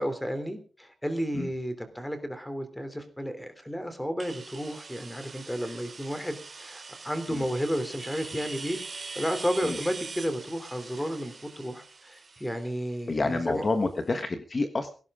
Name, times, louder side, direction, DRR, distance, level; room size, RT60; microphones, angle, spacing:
voice 1, 0.0-8.8 9.1-13.9, equal, 5° left, 9 dB, 3.1 m, -32 dB
sound 1, 4.2-13.8, right 4 dB, 35° right, 3.7 m, -43 dB
voice 2, 13.1-14.9, left 3 dB, 30° left, 7 dB, 1.4 m, -28 dB
17.0 x 16.5 x 3.7 m, 0.38 s
wide cardioid pair, 165°, 0 cm